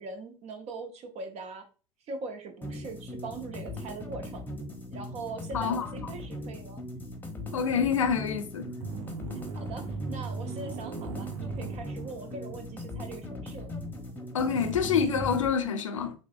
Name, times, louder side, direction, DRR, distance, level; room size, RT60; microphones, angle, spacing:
voice 1, 0.0-1.7 2.1-4.4 4.9-6.8 9.6-13.7, right 3 dB, 40° right, 0.8 m, -41 dB
sound 1, 2.6-15.5, left 1 dB, 10° left, 0.9 m, -39 dB
voice 2, 5.5-6.1 7.5-8.8 14.3-16.1, left 6 dB, 80° left, 0.5 m, -27 dB
sound 2, 8.8-12.6 12.8-12.9 14.6-15.4, right 5 dB, 70° right, 0.5 m, -38 dB
6.0 x 2.1 x 2.4 m
figure-of-eight pair, 65°, 16 cm